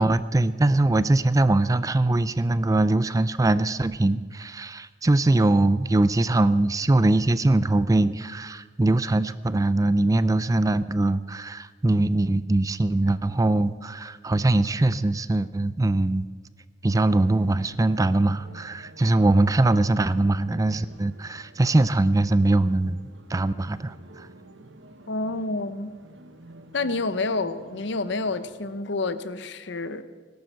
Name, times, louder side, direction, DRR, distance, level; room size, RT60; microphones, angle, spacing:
voice 1, 0.0-16.3 16.8-23.0 23.3-24.3, right 2 dB, 20° right, 15 dB, 0.4 m, -22 dB
sound 1, 17.2-28.8, right 1 dB, 80° right, 1.4 m, -49 dB
voice 2, 25.1-25.9 26.7-30.0, left 3 dB, 70° left, 13 dB, 0.8 m, -29 dB
17.0 x 12.0 x 6.7 m, 1.5 s
head